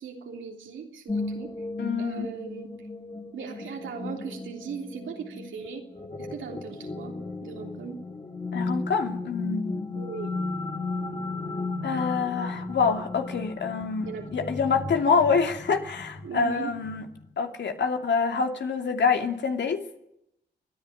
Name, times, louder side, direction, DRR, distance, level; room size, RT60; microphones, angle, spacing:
voice 1, 0.0-1.5 2.0-2.7 3.3-5.8 6.2-7.2 7.4-8.0 9.9-10.3 14.0-14.5 16.2-16.7, right 6 dB, 75° right, 2 dB, 3.3 m, -38 dB
sound 1, 1.1-17.3, left 3 dB, 30° left, 2.9 m, -35 dB
voice 2, 1.8-2.3 8.5-10.0 11.8-17.0 17.4-19.8, left 5 dB, 65° left, 4 dB, 2.6 m, -26 dB
27.5 x 10.5 x 9.8 m, 0.82 s
supercardioid pair, 55°, 20 cm